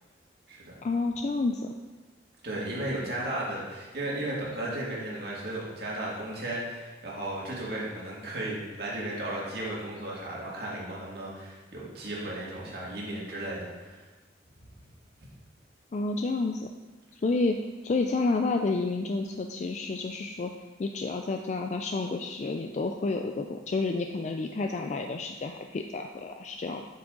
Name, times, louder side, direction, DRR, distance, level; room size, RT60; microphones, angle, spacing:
voice 1, 0.8-1.7 15.9-16.7 17.1-20.5 20.8-26.9, left 3 dB, 40° left, 4 dB, 0.3 m, -30 dB
voice 2, 2.4-14.0, right 1 dB, 60° right, -5 dB, 2.2 m, -35 dB
8.5 x 6.0 x 3.8 m, 1.3 s
head